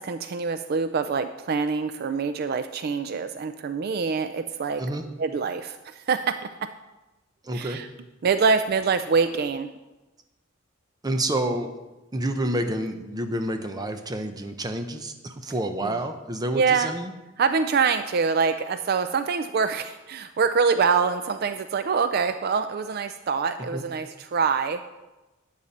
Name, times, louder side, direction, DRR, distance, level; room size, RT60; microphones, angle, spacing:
voice 1, 0.0-4.8 5.2-6.7 7.5-7.9 8.2-9.7 15.8-16.0 16.5-16.9 17.4-24.8, right 5 dB, 50° right, 10 dB, 0.4 m, -25 dB
voice 2, 7.4-7.8 11.0-11.7 12.1-17.1 23.7-23.8, right 1 dB, 20° right, 7 dB, 0.7 m, -29 dB
12.0 x 9.2 x 4.2 m, 1.1 s
head